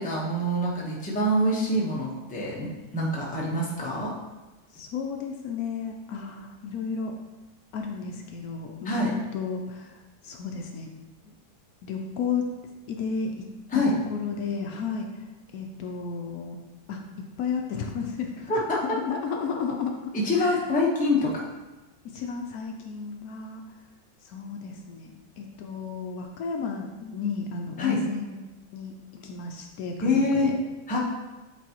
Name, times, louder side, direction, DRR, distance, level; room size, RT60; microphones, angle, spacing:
voice 1, 0.0-4.1 8.8-9.1 13.7-13.9 18.5-18.8 20.1-21.4 27.8-28.0 30.0-30.5 30.9-31.0, left 1 dB, 5° left, -4 dB, 0.7 m, -25 dB
voice 2, 4.7-7.1 7.7-10.0 10.2-10.9 11.8-12.5 12.9-13.3 13.7-15.2 15.5-16.6 16.9-17.0 17.4-18.5 18.8-20.6 22.0-23.6 24.2-30.5, left 5 dB, 70° left, 3 dB, 1.0 m, -33 dB
8.2 x 4.0 x 2.9 m, 1.1 s
omnidirectional pair, 1.7 m